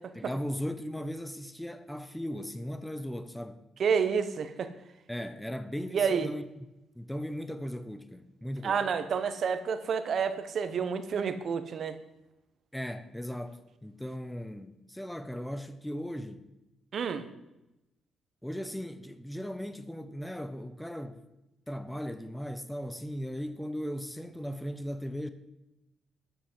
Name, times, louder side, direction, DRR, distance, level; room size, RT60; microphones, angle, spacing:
voice 1, 0.1-3.6 5.1-6.4 6.9-8.9 12.7-16.5 18.4-21.2 21.7-25.3, equal, 5° left, 0.9 m, -37 dB
voice 2, 3.8-4.7 5.9-6.3 8.6-12.0 16.9-17.3, right 6 dB, 55° right, 1.2 m, -29 dB
12.5 x 6.1 x 7.9 m
cardioid pair, 90°, 0 cm